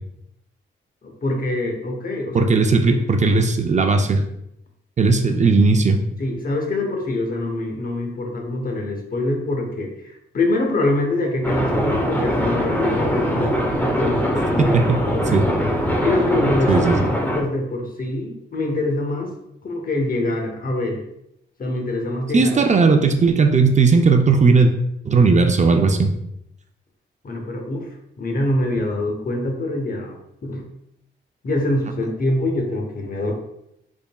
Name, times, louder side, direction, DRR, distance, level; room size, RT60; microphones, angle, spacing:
voice 1, 1.0-2.5 2.9-3.0 6.2-15.3 16.0-16.7 17.2-19.3 19.6-21.0 21.6-22.6 27.2-27.9 28.2-30.2 30.4-30.6 31.4-33.3, left 2 dB, 45° left, 1 dB, 0.9 m, -24 dB
voice 2, 2.3-4.2 5.0-6.0 14.7-15.0 15.3-15.4 16.7-17.0 22.3-24.7 25.0-26.1, right 4 dB, 35° right, 4 dB, 0.4 m, -16 dB
sound 1, 11.4-17.4, equal, 10° left, 0.7 m, -22 dB
3.9 x 3.6 x 2.2 m, 0.80 s
cardioid pair, 85°, 20 cm